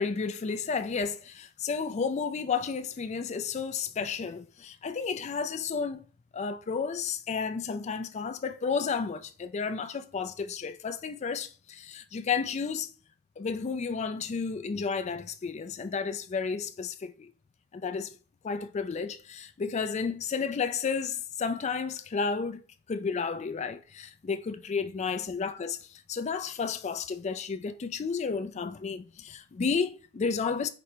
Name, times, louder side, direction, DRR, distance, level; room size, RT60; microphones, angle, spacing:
voice 1, 0.0-6.0 6.3-12.9 13.4-17.3 17.7-18.1 18.4-22.6 22.9-25.8 26.1-30.7, left 5 dB, 30° left, 0.3 m, -32 dB
5.0 x 2.1 x 4.4 m
head